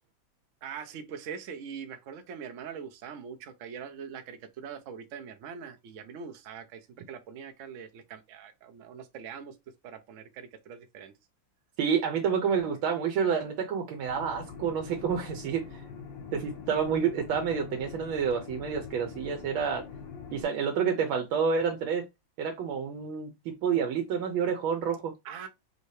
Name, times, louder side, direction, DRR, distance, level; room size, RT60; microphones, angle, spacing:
voice 1, 0.6-9.6 9.8-11.1 25.2-25.5, right 7 dB, 65° right, 0.8 m, -42 dB
voice 2, 11.8-15.8 16.3-19.8 20.3-22.1 22.4-25.1, right 6 dB, 85° right, 1.6 m, -29 dB
sound 1, 14.1-20.4, left 6 dB, 70° left, 1.5 m, -43 dB
5.4 x 2.7 x 3.1 m
omnidirectional pair, 2.2 m